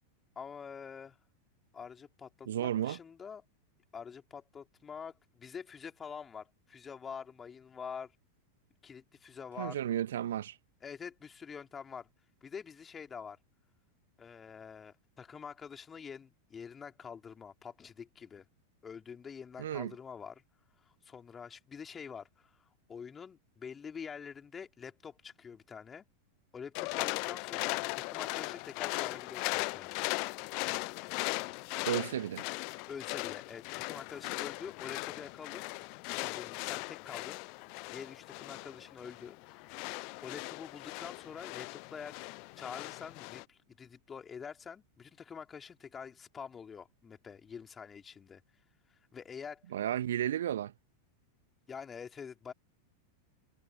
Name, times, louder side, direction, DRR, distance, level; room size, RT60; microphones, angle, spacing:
voice 1, 0.4-1.2 1.7-3.4 3.9-8.1 8.8-9.8 10.8-12.1 12.4-13.4 14.2-18.4 18.8-20.4 20.8-26.1 26.5-30.1 32.9-35.7 36.1-37.4 37.9-39.7 40.2-42.2 42.6-48.4 48.9-49.7 51.7-52.5, left 6 dB, 20° left, 3.7 m, -46 dB
voice 2, 2.5-3.0 9.6-10.6 19.6-19.9 31.8-32.4 49.7-50.7, right 11 dB, 60° right, 1.2 m, -33 dB
sound 1, 26.7-43.4, left 36 dB, 45° left, 0.5 m, -38 dB
figure-of-eight pair, 90°, 0 cm